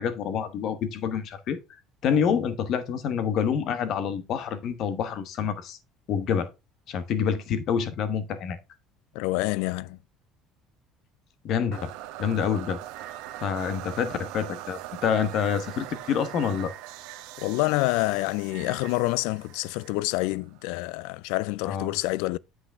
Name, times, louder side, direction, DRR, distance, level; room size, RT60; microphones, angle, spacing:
voice 1, 0.0-1.6 2.0-5.8 6.1-6.5 6.9-8.6 11.4-11.9 12.2-12.8 13.4-16.7 21.7-21.9, left 7 dB, 50° left, 1.1 m, -27 dB
voice 2, 9.1-10.0 17.4-22.4, left 20 dB, 85° left, 0.3 m, -27 dB
sound 1, 11.7-20.7, right 14 dB, 80° right, 0.9 m, -41 dB
7.9 x 6.2 x 3.5 m
cardioid pair, 150°, 0 cm